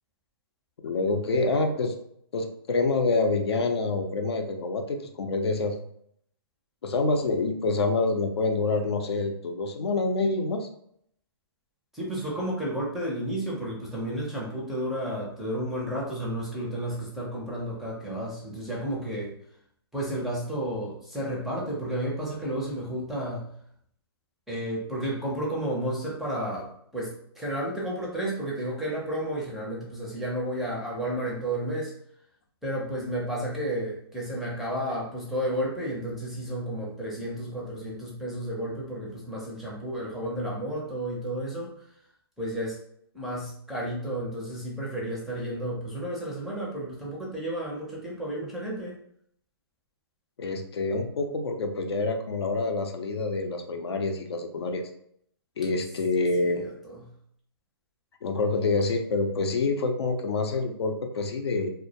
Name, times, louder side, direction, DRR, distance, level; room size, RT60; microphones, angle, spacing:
voice 1, 0.8-1.9 2.3-5.8 6.8-10.7 50.4-54.8 55.6-56.7 58.2-61.7, left 3 dB, 75° left, 4 dB, 0.5 m, -27 dB
voice 2, 11.9-19.3 19.9-23.5 24.5-31.9 32.6-41.7 42.4-42.8 43.1-49.0, right 1 dB, ahead, -5 dB, 0.5 m, -32 dB
2.2 x 2.0 x 2.7 m, 0.68 s
hypercardioid pair, 145°, 14 cm